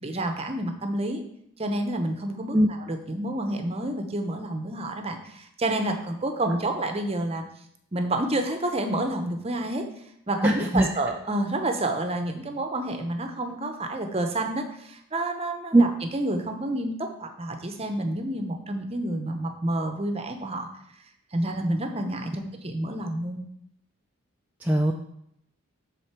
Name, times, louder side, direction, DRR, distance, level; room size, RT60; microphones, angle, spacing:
voice 1, 0.0-1.2 1.6-2.6 2.9-7.4 7.9-9.8 10.3-20.7 21.3-23.4, right 1 dB, 25° right, 5 dB, 0.7 m, -29 dB
voice 2, 10.4-10.9 15.7-15.8 24.6-24.9, right 1 dB, 5° right, 0 dB, 0.3 m, -19 dB
7.8 x 3.8 x 5.8 m, 0.74 s
head